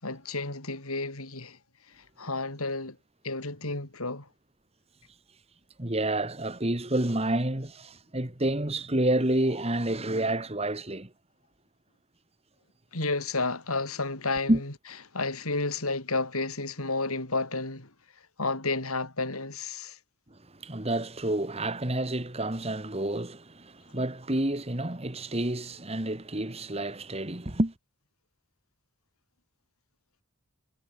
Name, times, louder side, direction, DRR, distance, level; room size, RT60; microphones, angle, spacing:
voice 1, 0.0-1.6 2.0-3.0 3.2-4.3 12.9-14.6 15.1-17.9 18.4-20.0, left 3 dB, 85° left, 6.0 m, -31 dB
voice 2, 5.8-11.1 14.5-14.6 20.3-27.7, right 1 dB, 30° right, 1.9 m, -29 dB
head